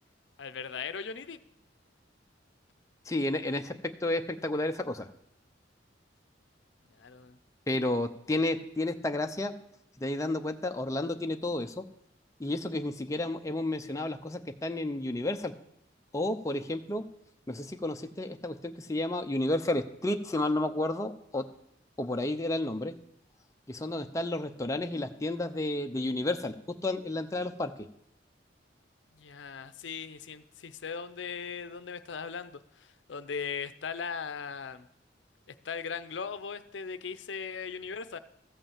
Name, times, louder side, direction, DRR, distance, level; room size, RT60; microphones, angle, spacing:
voice 1, 0.4-1.4 6.9-7.4 29.1-34.8 35.6-38.2, left 6 dB, 75° left, 12 dB, 0.6 m, -38 dB
voice 2, 3.1-5.1 7.7-9.5 10.0-11.8 12.4-15.5 16.1-17.0 17.5-21.4 22.0-22.9 23.7-27.7, left 1 dB, 15° left, 5 dB, 0.6 m, -31 dB
14.0 x 5.6 x 7.3 m, 0.77 s
head